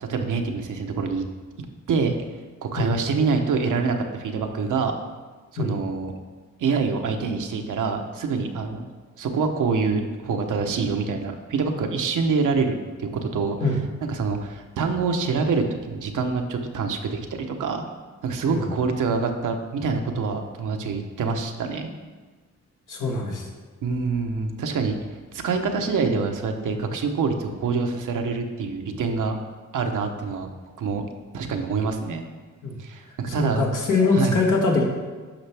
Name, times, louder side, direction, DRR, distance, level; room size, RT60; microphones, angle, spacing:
voice 1, 0.0-1.2 1.9-2.2 2.6-5.0 5.5-6.1 6.6-8.8 9.2-13.6 14.1-17.9 18.2-21.9 23.8-25.0 25.3-29.3 29.7-30.5 30.8-31.0 31.3-32.2 32.8-33.7 34.1-34.4, right 4 dB, 85° right, 4 dB, 0.9 m, -25 dB
voice 2, 22.9-23.4 32.6-32.7 33.3-34.8, left 3 dB, 90° left, -1 dB, 1.7 m, -23 dB
10.0 x 5.9 x 3.4 m, 1.4 s
cardioid pair, 65°, 31 cm